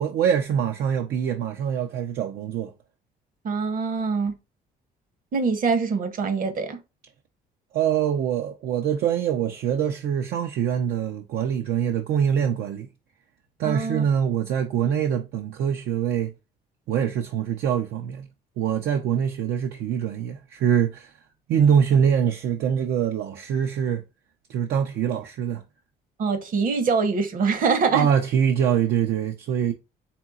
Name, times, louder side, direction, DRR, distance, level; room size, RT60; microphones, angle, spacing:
voice 1, 0.0-2.7 7.7-12.9 13.6-16.3 16.9-18.3 18.6-21.1 21.5-24.0 24.5-25.6 27.9-29.7, right 8 dB, 70° right, 0.6 m, -24 dB
voice 2, 3.4-4.3 5.3-6.8 13.6-14.0 26.2-28.1, right 5 dB, 55° right, 1.1 m, -24 dB
4.4 x 3.6 x 2.4 m
cardioid pair, 110°, 17 cm